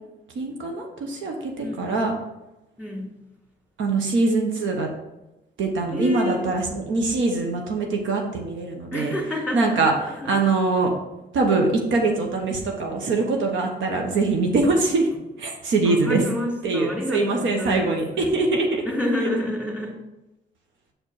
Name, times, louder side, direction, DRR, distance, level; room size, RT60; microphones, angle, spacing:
voice 1, 0.4-2.1 3.8-4.9 5.6-9.1 9.5-10.9 11.3-15.1 15.4-16.2 16.6-18.8, right 3 dB, 80° right, 2 dB, 1.0 m, -23 dB
voice 2, 5.9-6.4 8.9-10.4 15.8-18.3 18.8-19.9, left 1 dB, 5° right, -1 dB, 2.4 m, -29 dB
6.4 x 4.4 x 4.7 m, 0.97 s
cardioid pair, 70°, 20 cm